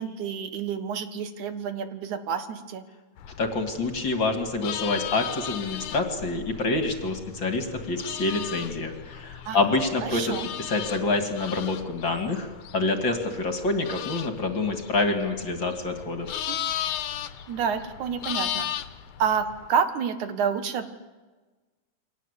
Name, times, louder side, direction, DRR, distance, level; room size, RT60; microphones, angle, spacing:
voice 1, 0.0-2.8 9.5-9.6 10.0-10.5 16.5-16.6 17.5-18.7 19.2-20.9, right 7 dB, 75° right, 9 dB, 3.0 m, -29 dB
sound 1, 3.2-19.7, left 11 dB, 80° left, 2.5 m, -36 dB
voice 2, 3.4-12.5 12.7-16.3, left 3 dB, 40° left, 6 dB, 2.9 m, -27 dB
28.5 x 23.5 x 8.4 m, 1.3 s
omnidirectional pair, 3.5 m